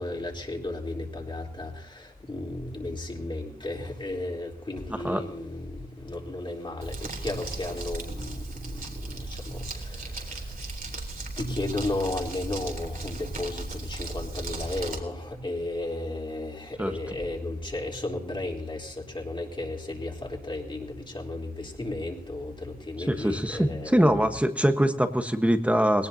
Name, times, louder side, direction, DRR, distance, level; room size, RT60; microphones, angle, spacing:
voice 1, 0.0-10.8 11.4-24.3, left 2 dB, 30° left, 0 dB, 3.5 m, -34 dB
Crumpling crinkling, 6.8-15.0, right 2 dB, 70° right, 3.9 m, -36 dB
voice 2, 23.1-26.1, equal, 10° right, 6 dB, 1.2 m, -23 dB
21.5 x 18.5 x 2.8 m, 0.70 s
wide cardioid pair, 100°, 15 cm